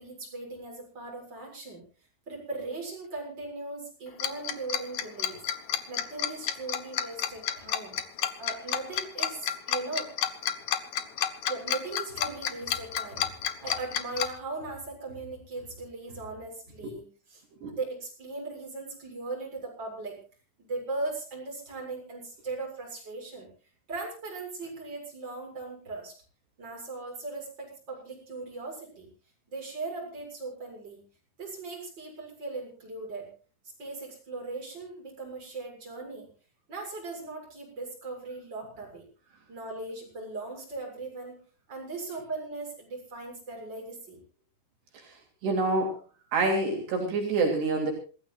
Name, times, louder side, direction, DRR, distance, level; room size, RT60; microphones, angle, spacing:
voice 1, 0.0-1.8 2.3-5.5 5.9-8.0 8.4-10.1 11.5-13.3 13.6-20.2 20.6-23.5 23.9-26.1 26.6-29.1 29.5-31.0 31.4-33.3 33.8-36.3 36.7-39.0 39.5-41.4 41.7-44.2, right 3 dB, 25° right, 0 dB, 7.4 m, -38 dB
Tick-tock, 4.2-14.3, left 10 dB, 80° left, 1.6 m, -30 dB
voice 2, 44.9-46.0 46.3-47.9, right 3 dB, 65° right, 1 dB, 5.1 m, -27 dB
27.5 x 16.0 x 2.5 m, 0.37 s
omnidirectional pair, 5.2 m